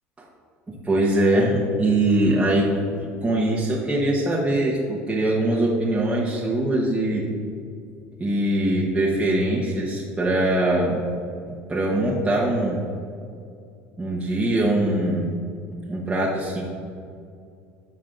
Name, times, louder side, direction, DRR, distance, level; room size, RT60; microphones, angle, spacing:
voice 1, 0.7-7.3 8.2-11.0 11.5-12.8 14.0-15.3 15.9-16.6, right 1 dB, 15° right, -5 dB, 1.2 m, -22 dB
13.0 x 5.6 x 2.6 m, 2.4 s
supercardioid pair, 85°, 7 cm